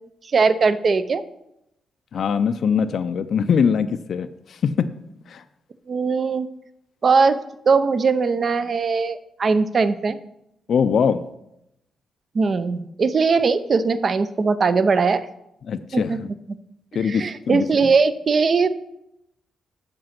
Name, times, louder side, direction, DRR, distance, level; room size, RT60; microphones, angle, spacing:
voice 1, 0.3-1.2 5.9-6.5 7.0-7.4 7.7-10.2 12.3-15.3 15.9-16.2 17.0-18.7, right 4 dB, 50° right, 13 dB, 0.5 m, -20 dB
voice 2, 2.1-4.9 5.3-5.4 10.7-11.2 15.7-16.3 16.9-17.9, left 6 dB, 65° left, 11 dB, 0.4 m, -22 dB
7.6 x 5.1 x 5.8 m, 0.83 s
cardioid pair, 75°, 0 cm